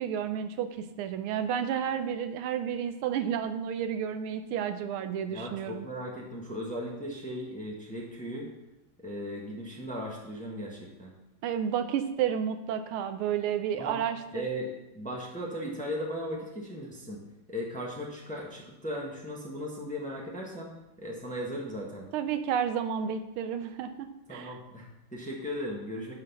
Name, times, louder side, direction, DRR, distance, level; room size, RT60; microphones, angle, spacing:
voice 1, 0.0-5.9 11.4-14.4 22.1-24.6, right 8 dB, 80° right, 9 dB, 1.5 m, -31 dB
voice 2, 5.3-8.5 9.0-11.1 13.8-14.0 14.3-17.2 17.5-20.7 21.0-22.1 24.3-26.1, equal, 5° left, -2 dB, 1.1 m, -37 dB
10.5 x 4.1 x 5.4 m, 0.93 s
omnidirectional pair, 2.4 m